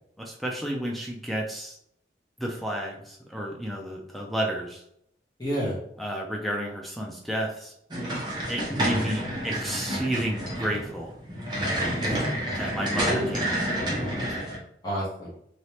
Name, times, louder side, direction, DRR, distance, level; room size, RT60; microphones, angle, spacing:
voice 1, 0.2-1.8 2.4-4.8 6.0-7.7 8.5-11.1 12.6-13.7, right 1 dB, ahead, -1 dB, 0.4 m, -31 dB
voice 2, 5.4-5.8 8.7-9.1 12.0-13.2 14.8-15.3, equal, 20° left, -7 dB, 1.0 m, -31 dB
sound 1, 7.9-14.6, right 1 dB, 25° right, 0.8 m, -29 dB
3.2 x 2.9 x 2.8 m, 0.73 s
head